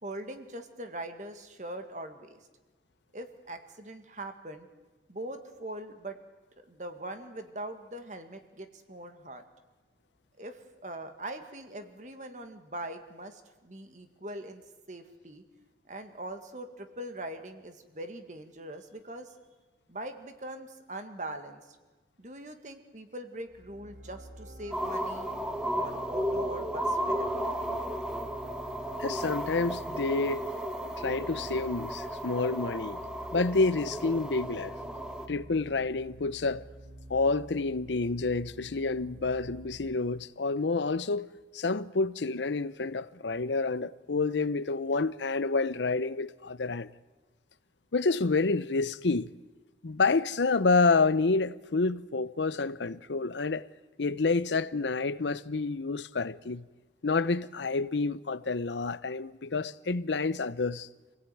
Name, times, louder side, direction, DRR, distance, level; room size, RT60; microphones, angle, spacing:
voice 1, 0.0-2.4 3.1-4.7 5.1-6.2 6.7-9.4 10.4-14.6 14.9-15.4 15.9-19.3 19.9-21.8 22.2-25.3 25.7-27.3, right 1 dB, 45° right, 2.0 m, -42 dB
sound 1, 23.5-39.9, right 1 dB, 80° right, 2.7 m, -49 dB
sound 2, 24.7-35.3, equal, 5° right, 1.2 m, -34 dB
voice 2, 29.0-30.5 31.0-33.0 33.3-34.7 35.3-36.6 37.1-46.9 47.9-49.3 49.8-53.6 54.0-56.6 57.0-60.9, left 3 dB, 90° left, 0.7 m, -28 dB
27.0 x 17.0 x 9.3 m
head